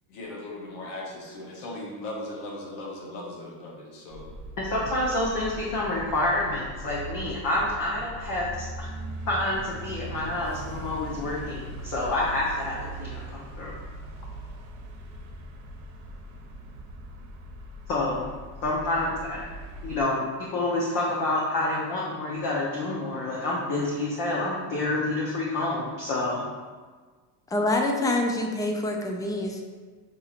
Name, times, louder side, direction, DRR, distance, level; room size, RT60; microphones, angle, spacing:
voice 1, 0.1-4.3, left 1 dB, 85° left, -2 dB, 1.1 m, -38 dB
sound 1, 4.1-20.0, right 1 dB, 75° right, 0.9 m, -40 dB
voice 2, 4.6-8.9 9.3-13.7 17.9-18.3 18.6-19.5 19.8-26.5, left 2 dB, 50° left, -4 dB, 0.9 m, -28 dB
voice 3, 27.5-29.6, left 2 dB, 10° left, 2 dB, 0.3 m, -26 dB
6.6 x 2.8 x 2.5 m, 1.4 s
cardioid pair, 115°, 43 cm